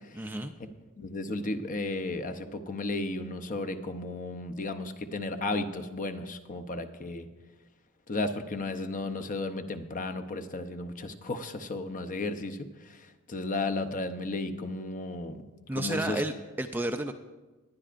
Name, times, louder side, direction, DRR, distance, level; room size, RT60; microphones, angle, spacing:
voice 1, 0.2-0.5 15.7-17.1, right 1 dB, 10° right, 6 dB, 0.4 m, -32 dB
voice 2, 1.0-7.3 8.1-15.4 15.7-16.2, left 2 dB, 35° left, 8 dB, 0.7 m, -34 dB
20.0 x 11.0 x 2.5 m, 1.2 s
head